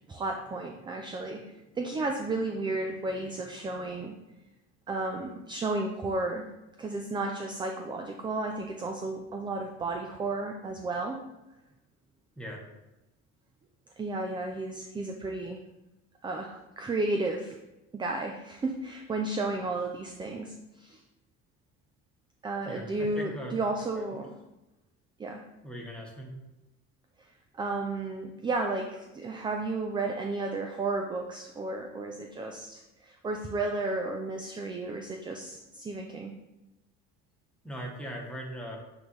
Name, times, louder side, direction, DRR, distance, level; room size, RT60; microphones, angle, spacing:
voice 1, 0.1-4.1 4.9-6.5 6.8-11.2 14.0-15.6 16.2-17.6 17.9-21.0 22.4-24.3 25.2-25.4 27.5-36.3, right 2 dB, 15° right, 3 dB, 0.4 m, -33 dB
voice 2, 22.6-23.6 23.9-24.2 25.6-26.3 37.6-38.8, equal, 5° left, -2 dB, 1.3 m, -39 dB
8.0 x 3.9 x 3.3 m, 0.98 s
cardioid pair, 140°, 31 cm